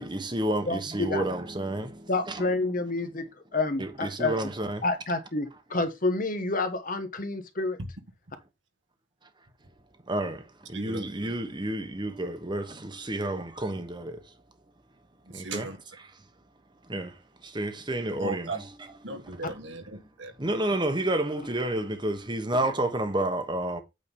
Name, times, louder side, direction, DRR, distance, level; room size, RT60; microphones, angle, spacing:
voice 1, 0.0-2.5 3.8-4.8 10.1-14.3 15.3-15.7 16.9-18.5 20.4-23.8, right 1 dB, 25° right, 1.2 m, -30 dB
voice 2, 0.7-1.2 2.1-3.2 3.5-4.4 4.8-7.8, left 3 dB, 45° left, 1.2 m, -29 dB
voice 3, 10.7-11.1 13.3-13.4 15.3-15.8 18.2-18.6 19.0-20.3, right 3 dB, 75° right, 1.5 m, -37 dB
8.7 x 3.8 x 5.4 m
head